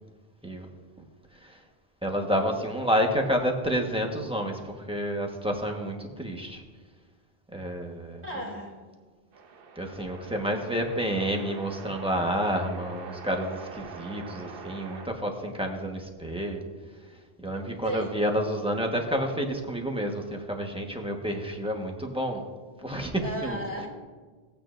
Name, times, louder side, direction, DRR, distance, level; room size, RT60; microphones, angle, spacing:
voice 1, 2.0-6.6 7.5-8.2 9.8-16.7 17.4-22.4 22.8-23.6, equal, 5° right, 2 dB, 1.2 m, -29 dB
voice 2, 8.2-8.8 10.8-10.9 17.8-18.1 23.2-23.9, right 1 dB, 30° right, -1 dB, 2.7 m, -34 dB
sound 1, 9.3-15.1, right 5 dB, 65° right, 0.9 m, -44 dB
17.5 x 8.9 x 2.6 m, 1.4 s
omnidirectional pair, 1.0 m